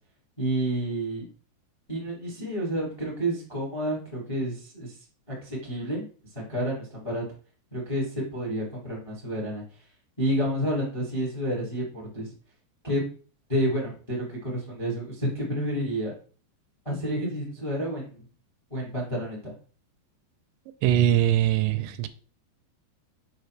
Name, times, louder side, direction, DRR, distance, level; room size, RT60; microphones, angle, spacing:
voice 1, 0.4-1.3 1.9-4.9 5.3-6.0 6.3-7.2 7.7-9.6 10.2-12.3 12.8-13.0 13.5-16.2 16.8-18.2 18.7-19.5, equal, 20° left, -3 dB, 0.9 m, -30 dB
voice 2, 20.8-22.1, right 12 dB, 85° right, 11 dB, 2.8 m, -22 dB
6.5 x 5.3 x 3.2 m, 0.40 s
omnidirectional pair, 5.0 m